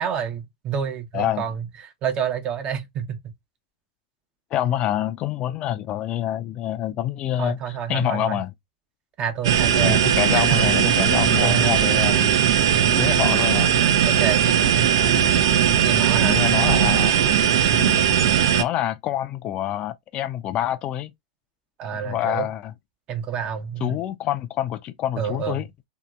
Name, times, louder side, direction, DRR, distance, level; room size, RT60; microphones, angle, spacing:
voice 1, 0.0-1.7 2.0-3.3 7.4-8.4 9.2-10.0 10.3-10.6 11.4-11.7 14.0-14.4 15.8-16.4 17.7-17.9 21.8-22.5 23.1-24.0 25.2-25.7, right 8 dB, 40° right, 0.7 m, -28 dB
voice 2, 1.1-1.4 4.5-8.5 9.8-12.3 12.9-13.8 16.2-17.1 17.8-18.1 18.6-21.1 21.9-22.7 23.8-25.7, left 12 dB, 40° left, 0.4 m, -26 dB
sound 1, 9.4-18.6, right 9 dB, 70° right, 0.5 m, -19 dB
2.9 x 2.7 x 2.3 m
hypercardioid pair, 105°, 3 cm